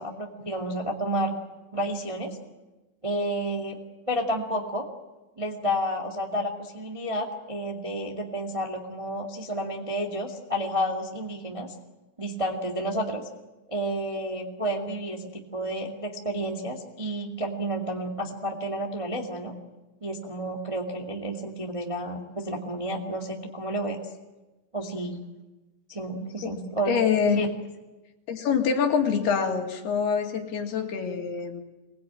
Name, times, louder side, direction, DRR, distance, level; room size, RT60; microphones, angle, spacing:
voice 1, 0.0-1.3 1.7-2.4 3.0-3.8 4.1-4.9 5.4-11.7 12.2-13.2 13.7-19.5 20.0-24.0 24.7-25.2 25.9-26.9 27.3-27.5, right 1 dB, 15° right, 1 dB, 1.0 m, -31 dB
voice 2, 26.9-27.4 28.3-31.6, left 6 dB, 75° left, 3 dB, 4.2 m, -25 dB
24.0 x 20.5 x 9.0 m, 1.1 s
omnidirectional pair, 4.7 m